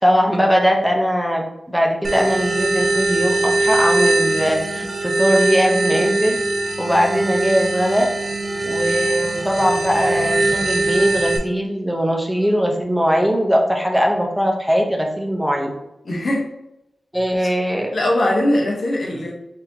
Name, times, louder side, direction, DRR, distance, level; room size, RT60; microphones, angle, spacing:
voice 1, 0.0-6.4 6.8-8.1 8.7-15.7 17.1-17.9, equal, ahead, 0 dB, 0.7 m, -20 dB
sound 1, 2.0-11.4, right 2 dB, 55° right, 0.5 m, -21 dB
voice 2, 16.0-16.5 17.4-17.5 17.9-19.3, left 1 dB, 65° left, -2 dB, 0.9 m, -20 dB
4.0 x 2.8 x 2.7 m, 0.86 s
wide cardioid pair, 95°, 0 cm